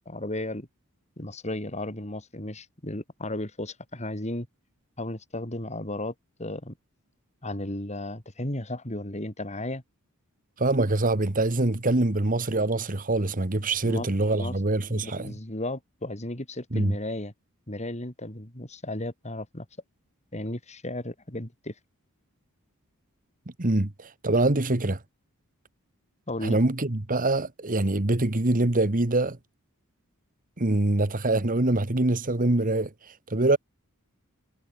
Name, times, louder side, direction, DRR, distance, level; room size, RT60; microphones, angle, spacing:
voice 1, 0.1-0.7 1.2-4.5 5.0-6.1 6.4-6.7 7.4-9.8 13.8-14.6 14.9-17.3 17.7-19.7 20.3-21.7 26.3-26.6, left 1 dB, 30° left, 3.7 m, -34 dB
voice 2, 10.6-15.3 16.7-17.0 23.6-25.0 26.4-29.4 30.6-32.9 33.3-33.6, right 2 dB, 40° right, 1.5 m, -24 dB
head